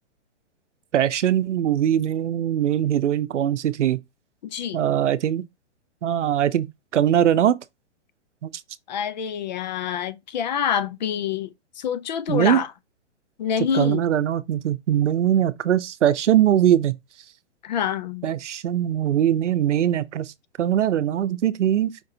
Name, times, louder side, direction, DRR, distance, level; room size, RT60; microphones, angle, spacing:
voice 1, 0.9-4.0 4.7-5.5 6.0-6.7 6.9-7.6 8.4-8.5 12.3-12.6 13.7-16.9 18.2-20.3 20.6-22.0, right 10 dB, 90° right, 0.7 m, -21 dB
voice 2, 4.4-4.8 8.9-12.7 13.4-14.1 17.6-18.3, left 8 dB, 40° left, 0.5 m, -26 dB
5.2 x 2.6 x 3.8 m
hypercardioid pair, 155°, 35 cm